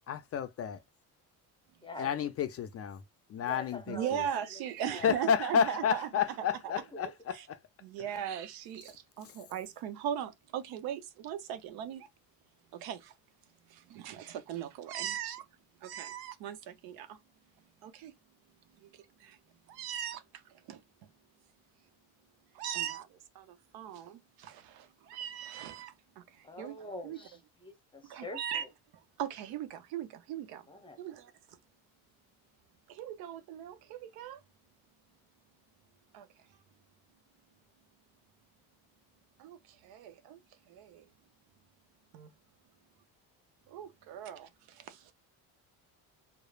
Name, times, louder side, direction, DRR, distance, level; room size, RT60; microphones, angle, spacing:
voice 1, 0.1-0.8 2.0-3.0 3.3-4.2 5.0-7.4 8.1-8.2 9.2-9.3, left 7 dB, 40° left, 0.4 m, -31 dB
voice 2, 1.8-2.1 3.4-5.2 6.7-7.1 26.4-28.7 30.7-31.0, left 2 dB, 15° left, 0.8 m, -46 dB
voice 3, 3.9-6.1 7.3-7.4 7.8-12.1 12.7-13.1 13.7-15.4 15.8-17.2 17.8-18.1 18.8-19.4 19.7-20.8 22.5-26.8 27.0-27.2 28.1-28.6 29.2-30.6 31.0-31.6 32.9-34.4 36.1-36.3 39.4-40.4 40.7-41.1 42.1-42.3 43.7-45.1, right 9 dB, 80° right, 0.6 m, -39 dB
3.0 x 2.0 x 2.3 m
cardioid pair, 90°, 36 cm